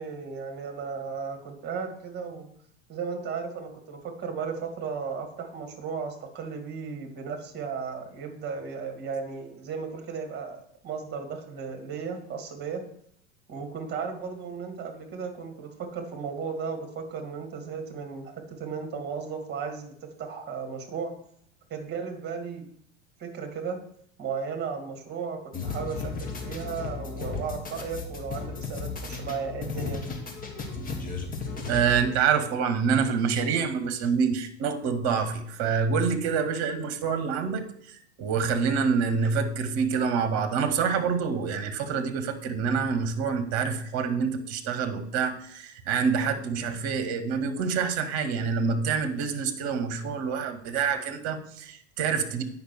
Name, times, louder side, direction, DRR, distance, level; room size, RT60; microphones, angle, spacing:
voice 1, 0.0-2.5 2.9-12.8 13.5-21.1 21.7-22.7 23.2-23.8 24.2-30.0, right 5 dB, 30° right, 4 dB, 2.1 m, -35 dB
sound 1, 25.5-32.2, left 4 dB, 25° left, 1.7 m, -35 dB
voice 2, 31.7-52.4, right 6 dB, 45° right, 8 dB, 1.4 m, -27 dB
8.9 x 5.6 x 4.7 m, 0.68 s
figure-of-eight pair, 85°, 35 cm